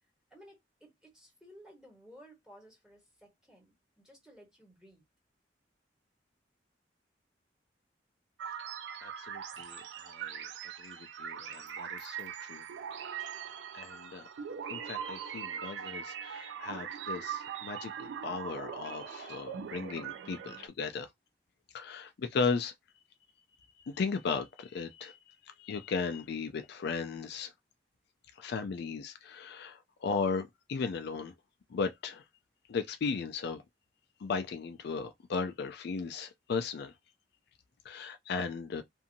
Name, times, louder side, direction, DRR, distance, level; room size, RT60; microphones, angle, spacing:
voice 1, 0.3-5.0, equal, 5° right, 1.4 m, -57 dB
sound 1, 8.4-20.7, right 8 dB, 75° right, 0.4 m, -41 dB
voice 2, 9.0-10.5 10.8-12.6 13.7-14.3 14.7-21.1 21.7-22.7 23.8-25.2 25.6-27.5 28.4-31.3 31.7-32.2 32.7-33.6 34.2-36.9 37.9-38.8, left 5 dB, 60° left, 0.4 m, -36 dB
2.7 x 2.5 x 2.6 m
head